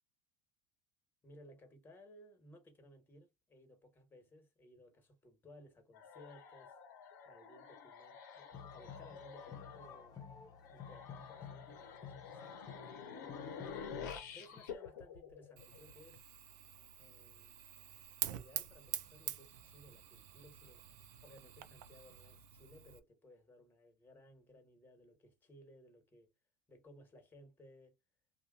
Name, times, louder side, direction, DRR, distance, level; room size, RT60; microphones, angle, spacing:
voice 1, 1.2-6.8 7.2-10.2 10.7-13.3 14.3-16.3 17.0-17.7 18.2-20.9 21.2-26.3 26.7-28.0, left 1 dB, 20° left, 1.3 m, -60 dB
sound 1, 5.9-16.2, left 6 dB, 80° left, 0.7 m, -50 dB
sound 2, 8.5-14.6, left 7 dB, 45° left, 0.7 m, -53 dB
Fire, 15.6-23.0, right 12 dB, 75° right, 0.4 m, -46 dB
2.7 x 2.2 x 2.4 m
hypercardioid pair, 80°, 10 cm